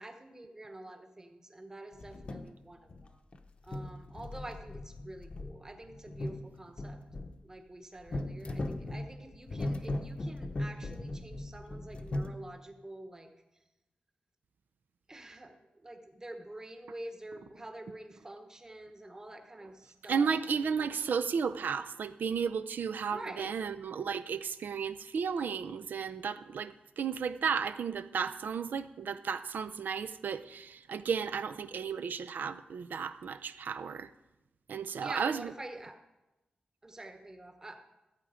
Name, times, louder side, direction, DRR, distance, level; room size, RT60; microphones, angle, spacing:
voice 1, 0.0-3.2 3.6-7.0 7.4-13.3 15.1-20.9 23.1-23.6 35.0-36.0 36.8-37.7, right 1 dB, 20° right, 1.1 m, -47 dB
sound 1, 1.9-2.5 2.9-3.4 3.7-7.4 8.1-12.3, left 1 dB, 40° left, 0.7 m, -38 dB
voice 2, 20.1-34.1 34.7-35.5, right 6 dB, 85° right, 0.5 m, -33 dB
14.5 x 8.3 x 5.0 m
wide cardioid pair, 160°, 3 cm